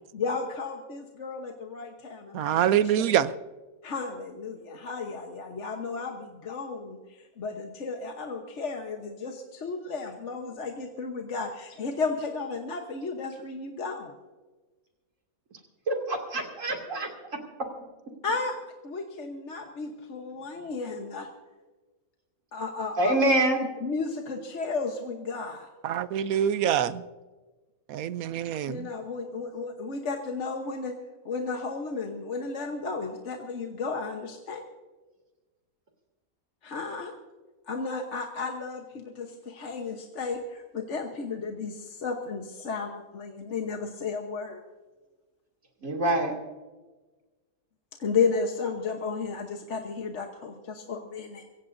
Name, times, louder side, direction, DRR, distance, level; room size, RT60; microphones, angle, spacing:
voice 1, 0.1-2.8 3.8-14.1 18.2-18.5 18.8-21.3 22.5-23.2 23.8-25.7 28.7-31.0 31.2-34.6 36.6-37.1 37.7-44.6 48.0-51.4, left 4 dB, 55° left, 1.4 m, -33 dB
voice 2, 2.3-3.3 25.8-27.0 27.9-28.9, right 10 dB, 80° right, 1.1 m, -25 dB
voice 3, 15.9-17.4 23.0-23.6 45.8-46.3, right 1 dB, 60° right, 2.9 m, -25 dB
24.5 x 16.5 x 2.6 m
omnidirectional pair, 1.5 m